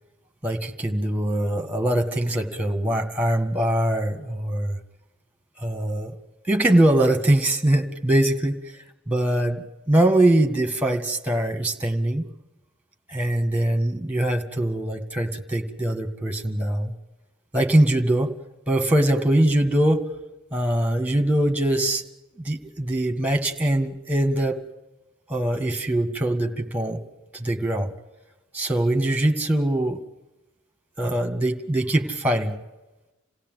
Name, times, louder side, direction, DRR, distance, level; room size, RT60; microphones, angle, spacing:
voice 1, 0.4-4.8 5.6-6.1 6.4-8.5 9.1-12.3 13.1-16.9 17.5-18.3 18.7-20.0 20.5-22.0 22.4-24.6 25.3-27.0 27.3-27.9 28.5-30.0 31.0-32.6, right 1 dB, 10° right, 6 dB, 2.0 m, -22 dB
28.0 x 16.5 x 9.3 m, 1.1 s
head